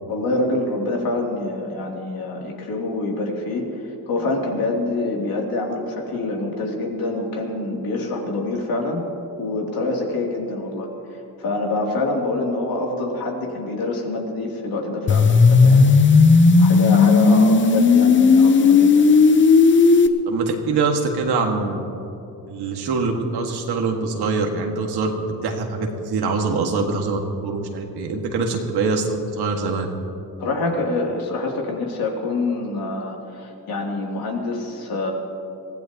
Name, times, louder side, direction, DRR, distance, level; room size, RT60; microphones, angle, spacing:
voice 1, 0.1-9.0 9.4-15.9 16.6-19.1 30.4-35.1, left 2 dB, 55° left, -1 dB, 3.0 m, -26 dB
sound 1, 15.1-20.1, left 4 dB, 30° left, 0.8 m, -13 dB
voice 2, 20.3-21.8 22.5-25.1 25.4-29.9, right 4 dB, 65° right, 2 dB, 1.9 m, -24 dB
23.5 x 16.0 x 3.0 m, 2.8 s
cardioid pair, 110°, 41 cm